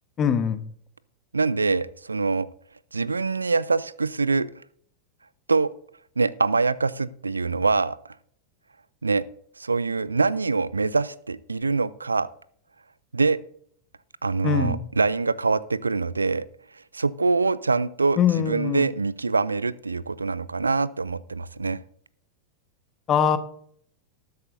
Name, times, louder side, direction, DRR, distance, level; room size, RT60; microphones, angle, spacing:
voice 1, 0.2-0.6 14.4-14.8 18.2-18.9 23.1-23.4, left 8 dB, 30° left, 11 dB, 1.1 m, -22 dB
voice 2, 1.3-2.5 2.9-4.5 5.5-5.7 6.2-8.1 9.0-9.2 9.6-12.3 13.1-13.4 14.2-16.5 16.9-21.8, right 4 dB, 80° right, 20 dB, 0.4 m, -24 dB
19.5 x 8.4 x 2.7 m, 0.63 s
figure-of-eight pair, 90°, 0 cm